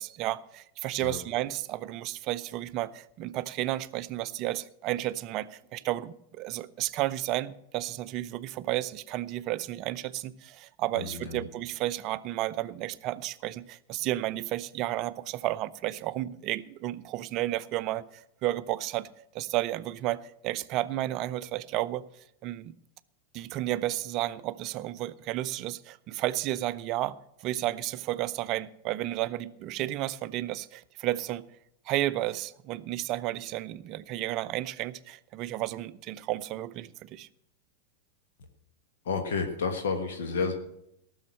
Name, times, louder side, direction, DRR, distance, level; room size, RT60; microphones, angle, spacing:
voice 1, 0.0-19.1 19.3-22.0 22.4-22.7 23.3-31.5 31.9-37.3, right 15 dB, 40° right, 0.5 m, -32 dB
voice 2, 10.9-11.5 39.0-40.5, left 5 dB, 60° left, 1.5 m, -31 dB
18.5 x 6.4 x 6.4 m
figure-of-eight pair, 90°, 0 cm